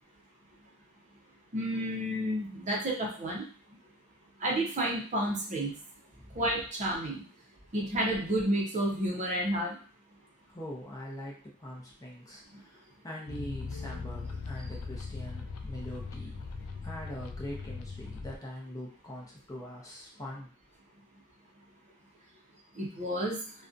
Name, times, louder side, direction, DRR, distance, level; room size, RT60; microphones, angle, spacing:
voice 1, 1.5-3.4 4.4-5.7 6.4-7.2 7.7-9.8 22.8-23.4, right 1 dB, 35° right, -2 dB, 0.6 m, -30 dB
voice 2, 10.5-16.4 16.8-20.5, equal, 15° left, -3 dB, 0.6 m, -43 dB
sound 1, 13.3-18.4, left 4 dB, 75° left, 0.4 m, -40 dB
2.5 x 2.2 x 2.5 m, 0.41 s
head